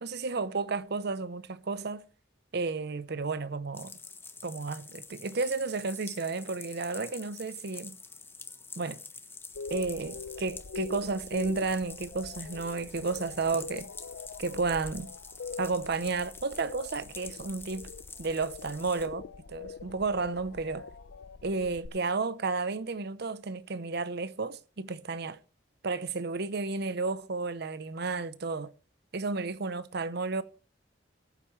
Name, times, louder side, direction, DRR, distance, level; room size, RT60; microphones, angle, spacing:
voice 1, 0.0-2.0 2.5-4.0 4.4-8.0 8.8-9.0 9.7-13.9 14.4-15.1 15.6-17.9 18.2-20.9 21.4-25.4 25.8-28.7 29.1-30.4, right 3 dB, 60° right, 0.8 m, -32 dB
sound 1, 3.7-19.1, left 4 dB, 10° left, 1.2 m, -47 dB
sound 2, 9.5-21.9, left 4 dB, 90° left, 0.6 m, -43 dB
20.5 x 8.9 x 3.2 m
head